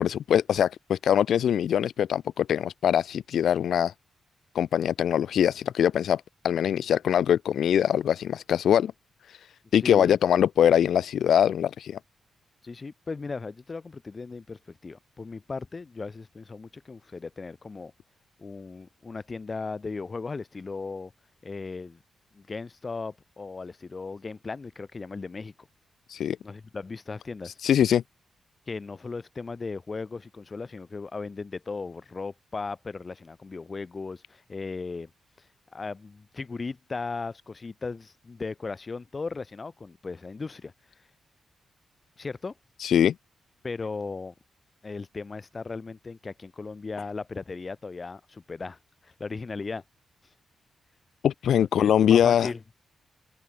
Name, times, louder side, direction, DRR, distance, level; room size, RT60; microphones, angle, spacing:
voice 1, 0.0-3.9 4.5-8.9 9.7-12.0 26.1-26.4 27.6-28.0 42.8-43.1 51.2-52.5, left 9 dB, 80° left, 0.9 m, -23 dB
voice 2, 9.8-10.2 12.6-17.9 18.4-21.1 21.4-22.0 22.3-25.5 26.4-27.6 28.7-35.1 35.4-35.5 35.7-40.7 42.2-42.5 43.6-44.3 44.8-49.8 51.8-52.6, left 4 dB, 30° left, 7.2 m, -37 dB
open air
wide cardioid pair, 155°, 0 cm